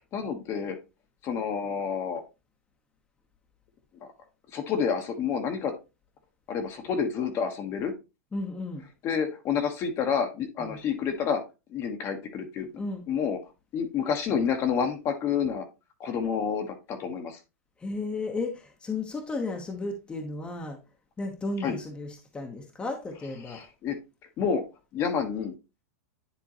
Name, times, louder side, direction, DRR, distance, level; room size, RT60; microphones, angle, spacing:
voice 1, 0.1-0.8 1.2-2.2 4.5-5.7 6.5-7.9 9.0-11.4 11.7-12.7 13.1-13.4 13.7-15.6 16.0-17.4 21.6-21.8 23.5-24.0 24.4-24.6 24.9-25.5, left 7 dB, 35° left, 1.2 m, -29 dB
voice 2, 8.3-8.8 10.6-10.8 12.7-13.0 17.8-20.8 21.2-23.6, left 3 dB, 15° left, 1.1 m, -34 dB
10.0 x 3.6 x 2.9 m
hypercardioid pair, 135°, 8 cm